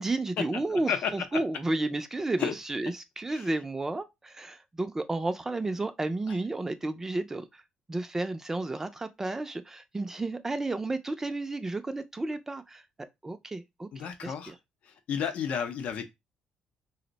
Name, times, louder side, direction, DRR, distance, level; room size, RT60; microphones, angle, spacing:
voice 1, 0.0-7.6 7.9-13.9 14.2-14.6, right 2 dB, 20° right, 0.4 m, -32 dB
voice 2, 13.9-14.5 14.9-16.1, left 7 dB, 70° left, 0.6 m, -32 dB
2.5 x 2.1 x 3.9 m
cardioid pair, 90°, 2 cm